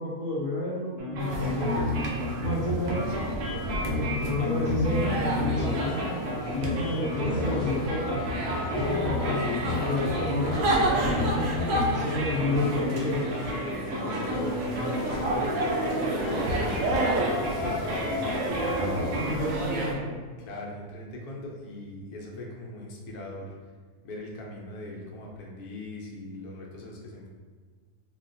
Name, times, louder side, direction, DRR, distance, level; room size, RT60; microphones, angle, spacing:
voice 1, 0.0-1.7 2.4-3.3 3.9-8.1 8.7-9.4 9.8-11.3 11.7-13.4 19.1-20.2, left 2 dB, 15° right, -10 dB, 0.5 m, -31 dB
sound 1, 1.0-19.3, left 1 dB, 85° right, 1.2 m, -31 dB
sound 2, 1.2-19.9, right 1 dB, 70° right, 0.8 m, -32 dB
sound 3, 5.3-18.5, left 2 dB, 40° left, 1.0 m, -36 dB
voice 2, 14.0-18.2 19.0-19.6 20.4-23.5 24.0-27.3, left 1 dB, 75° left, -2 dB, 1.1 m, -40 dB
3.8 x 2.1 x 2.6 m, 1.5 s
omnidirectional pair, 1.6 m